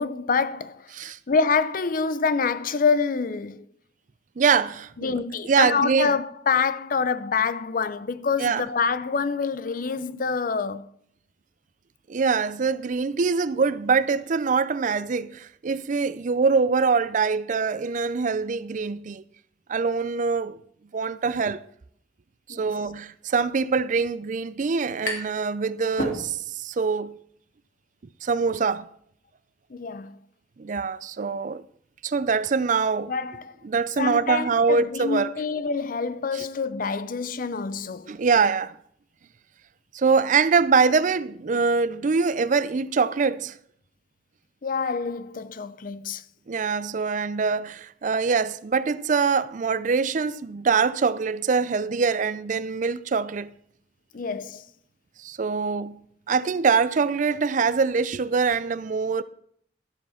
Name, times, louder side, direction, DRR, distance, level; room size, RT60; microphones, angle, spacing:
voice 1, 0.0-0.9 1.3-3.7 5.0-10.9 22.5-22.7 29.7-30.2 33.1-33.5 34.0-38.2 44.6-46.2 54.1-54.6, left 5 dB, 50° left, 0.6 m, -26 dB
voice 2, 4.4-5.2 5.5-6.1 8.4-8.6 12.1-19.2 19.7-20.6 20.9-21.6 22.5-27.2 28.2-28.9 30.6-31.6 32.0-33.1 33.6-35.3 36.3-36.5 38.1-38.8 39.9-43.6 46.5-53.5 55.2-56.0 56.3-59.2, right 5 dB, 45° right, 0.4 m, -24 dB
sound 1, 24.5-25.5 25.8-26.7, left 1 dB, 70° left, 2.7 m, -32 dB
13.0 x 7.2 x 5.7 m
head